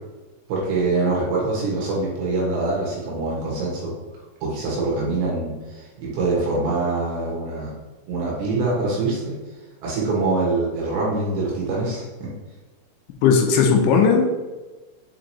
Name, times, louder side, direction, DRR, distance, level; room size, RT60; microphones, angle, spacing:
voice 1, 0.5-3.9 4.4-7.7 8.1-9.3 9.8-12.3, right 3 dB, 75° right, -5 dB, 3.7 m, -24 dB
voice 2, 13.2-14.3, left 5 dB, 80° left, 3 dB, 3.0 m, -16 dB
7.6 x 4.8 x 3.0 m, 1.2 s
omnidirectional pair, 5.5 m